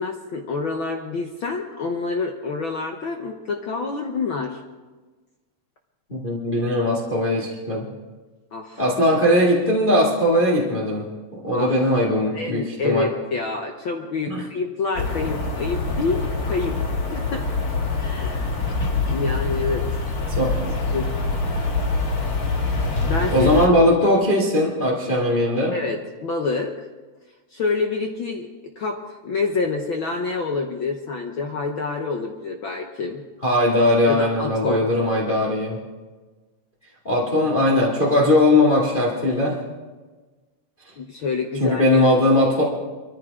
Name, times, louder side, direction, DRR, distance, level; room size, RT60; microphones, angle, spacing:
voice 1, 0.0-4.6 8.5-8.8 11.5-11.9 12.3-16.8 17.1-17.4 17.9-18.6 19.1-20.0 20.9-21.1 23.0-23.5 25.7-26.7 27.5-28.5 28.8-33.2 34.1-34.9 41.0-42.1, left 4 dB, 70° left, 3 dB, 1.1 m, -27 dB
voice 2, 6.1-7.9 8.8-13.1 14.3-14.4 20.4-20.7 23.3-25.7 33.4-35.8 37.0-39.6 41.6-42.6, left 1 dB, 20° left, -3 dB, 2.1 m, -19 dB
sound 1, 15.0-23.7, left 3 dB, 35° left, 1.7 m, -25 dB
23.5 x 14.0 x 3.6 m, 1.3 s
omnidirectional pair, 3.5 m